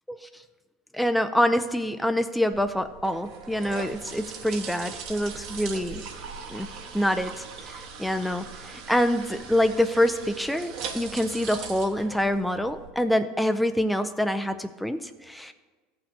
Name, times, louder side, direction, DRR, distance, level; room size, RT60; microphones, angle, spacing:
voice 1, 0.9-6.0 6.5-6.7 6.9-15.5, equal, ahead, 8 dB, 0.4 m, -26 dB
sound 1, 2.5-12.9, right 6 dB, 60° right, 1.3 m, -40 dB
15.5 x 5.9 x 2.7 m, 1.3 s
hypercardioid pair, 85°, 0 cm